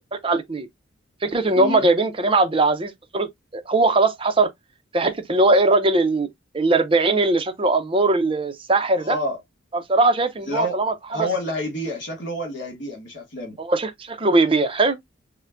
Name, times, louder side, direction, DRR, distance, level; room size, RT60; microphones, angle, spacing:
voice 1, 0.2-0.7 1.2-3.3 3.5-4.5 4.9-6.3 6.5-9.2 9.7-11.3 13.6-15.0, right 2 dB, 25° right, 0.6 m, -20 dB
voice 2, 1.6-1.9 8.9-9.4 10.5-10.8 11.1-13.6, equal, 60° left, 1.8 m, -28 dB
6.5 x 2.2 x 2.5 m
head